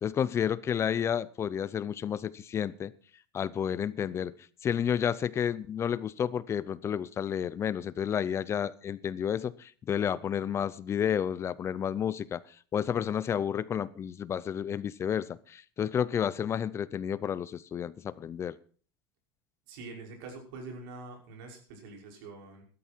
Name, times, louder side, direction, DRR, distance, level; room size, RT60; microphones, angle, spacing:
voice 1, 0.0-2.9 3.3-4.3 4.6-12.4 12.7-18.5, left 8 dB, 20° left, 18 dB, 0.5 m, -31 dB
voice 2, 19.7-22.6, right 3 dB, 70° right, 1 dB, 5.8 m, -45 dB
15.0 x 12.5 x 4.5 m, 0.41 s
supercardioid pair, 150°, 12 cm